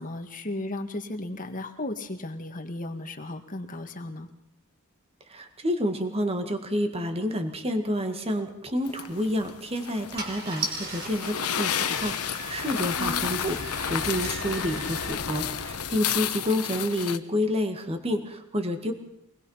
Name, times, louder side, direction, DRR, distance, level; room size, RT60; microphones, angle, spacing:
voice 1, 0.0-4.3 13.0-13.3, left 1 dB, 35° left, 6 dB, 1.9 m, -35 dB
voice 2, 5.3-18.9, equal, 25° right, 6 dB, 2.0 m, -29 dB
sound 1, 8.9-17.2, left 9 dB, 90° left, 1.1 m, -32 dB
Car / Engine starting, 9.1-9.3 9.9-10.0 10.2-15.1, right 2 dB, 45° right, 4.7 m, -38 dB
sound 2, 11.5-16.0, left 3 dB, 60° left, 1.3 m, -39 dB
24.5 x 20.0 x 5.7 m, 0.79 s
head